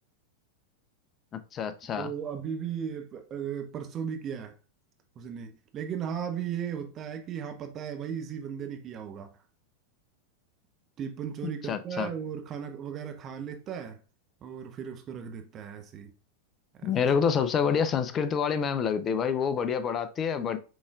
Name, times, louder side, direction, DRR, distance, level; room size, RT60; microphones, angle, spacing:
voice 1, 1.3-2.1 11.4-12.1 16.8-20.6, left 7 dB, 25° left, 0.5 m, -27 dB
voice 2, 2.0-4.6 5.2-9.4 11.0-14.0 14.4-16.1 16.8-17.1, right 8 dB, 30° right, 0.7 m, -36 dB
6.1 x 3.5 x 2.3 m
figure-of-eight pair, 90°, 0 cm